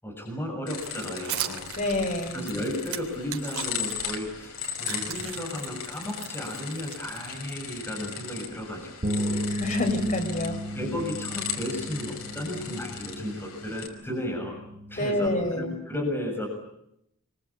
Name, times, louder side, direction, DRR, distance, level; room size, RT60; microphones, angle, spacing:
voice 1, 0.0-1.6 2.3-9.5 10.7-14.6 14.9-16.5, left 1 dB, 10° left, 1 dB, 7.0 m, -34 dB
sound 1, 0.7-13.9, left 7 dB, 80° left, 5.3 m, -37 dB
sound 2, 0.7-3.9 4.4-7.5, right 10 dB, 85° right, 3.5 m, -38 dB
voice 2, 1.8-2.5 9.6-10.6 15.0-15.7, left 1 dB, 35° left, 4 dB, 7.1 m, -27 dB
Bass guitar, 9.0-15.3, equal, 40° right, 1.6 m, -34 dB
28.0 x 24.0 x 8.6 m, 0.79 s
head